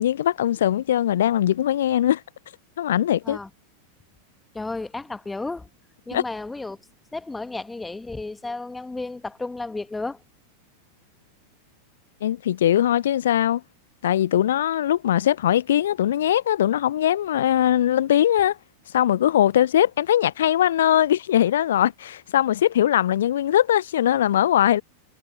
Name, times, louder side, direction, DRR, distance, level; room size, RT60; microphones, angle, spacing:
voice 1, 0.0-2.2 2.8-3.4 6.1-6.2 12.2-13.6 14.0-18.6 18.9-24.8, left 11 dB, 60° left, 0.4 m, -21 dB
voice 2, 4.5-5.7 6.1-10.2, left 3 dB, 10° left, 1.7 m, -33 dB
figure-of-eight pair, 90°, 0 cm